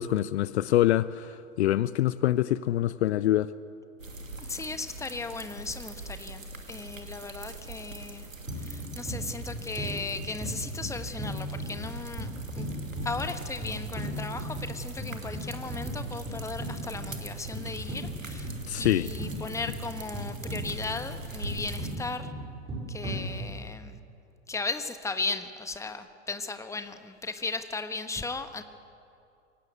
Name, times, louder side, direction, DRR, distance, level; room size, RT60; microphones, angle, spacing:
voice 1, 0.0-3.5 18.7-19.1, left 13 dB, 60° left, 18 dB, 0.6 m, -25 dB
sound 1, 4.0-22.0, right 2 dB, 85° right, 2.6 m, -43 dB
voice 2, 4.4-8.3 8.6-12.3 12.5-12.7 13.0-18.5 18.8-22.3 22.9-24.0 24.5-28.6, left 3 dB, 10° left, 9 dB, 1.2 m, -36 dB
sound 2, 8.5-23.8, right 1 dB, 15° right, 6.8 m, -37 dB
24.0 x 17.5 x 8.3 m, 2.5 s
figure-of-eight pair, 95°, 38 cm